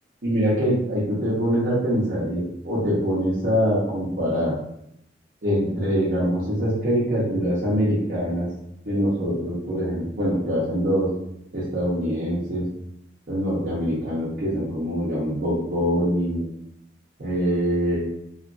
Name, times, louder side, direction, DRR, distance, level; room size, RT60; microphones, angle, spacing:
voice 1, 0.2-4.5 5.4-8.5 8.9-11.1 11.5-12.6 13.3-16.4 17.2-18.0, equal, 55° right, -9 dB, 0.8 m, -24 dB
3.0 x 2.4 x 2.5 m, 0.77 s
head